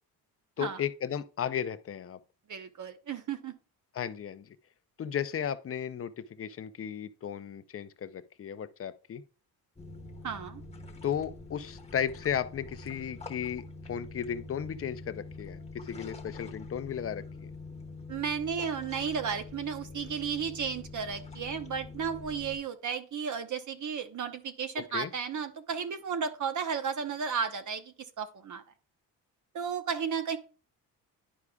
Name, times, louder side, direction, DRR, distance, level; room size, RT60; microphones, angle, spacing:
voice 1, 0.6-2.2 3.9-4.4 5.0-9.2 11.0-17.5 24.9-25.1, left 8 dB, 35° left, 0.5 m, -35 dB
voice 2, 2.5-3.5 10.2-10.6 18.1-28.6 29.5-30.4, right 6 dB, 50° right, 0.8 m, -34 dB
sound 1, 9.8-22.6, left 3 dB, 15° left, 1.1 m, -45 dB
11.0 x 4.8 x 2.3 m
cardioid pair, 120°, 39 cm